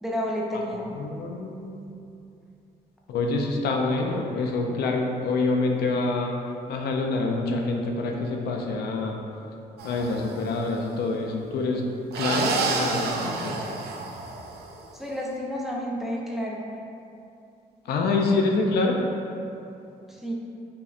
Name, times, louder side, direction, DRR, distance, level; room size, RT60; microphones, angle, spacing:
voice 1, 0.0-0.9 15.0-16.7 20.1-20.3, equal, ahead, -3 dB, 0.4 m, -30 dB
voice 2, 0.9-1.8 3.1-6.3 6.7-9.2 9.8-11.8 12.1-13.6 17.9-19.0, left 3 dB, 80° left, 1 dB, 0.4 m, -26 dB
sound 1, 9.8-10.5 12.1-14.7, right 3 dB, 85° right, 0.4 m, -29 dB
5.3 x 2.1 x 2.4 m, 2.7 s
cardioid pair, 110°, 16 cm